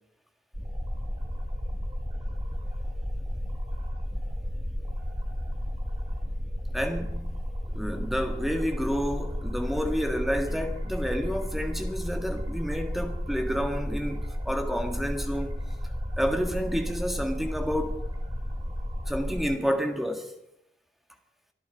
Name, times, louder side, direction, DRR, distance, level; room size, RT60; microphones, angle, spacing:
sound 1, 0.5-19.4, equal, 20° right, 3.1 m, -33 dB
voice 1, 6.7-15.6 16.2-18.0 19.1-20.4, equal, ahead, 1.7 m, -30 dB
24.5 x 12.0 x 4.1 m
head